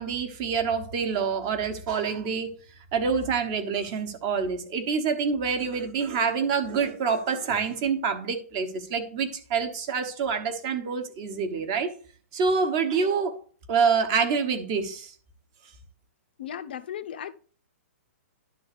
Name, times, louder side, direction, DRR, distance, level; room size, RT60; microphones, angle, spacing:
voice 1, 0.0-2.5 2.9-11.9 12.3-13.4 13.7-15.1, right 5 dB, 25° right, 1.1 m, -26 dB
voice 2, 16.4-17.3, left 9 dB, 40° left, 0.6 m, -36 dB
11.5 x 3.9 x 6.7 m
hypercardioid pair, 180°, 8 cm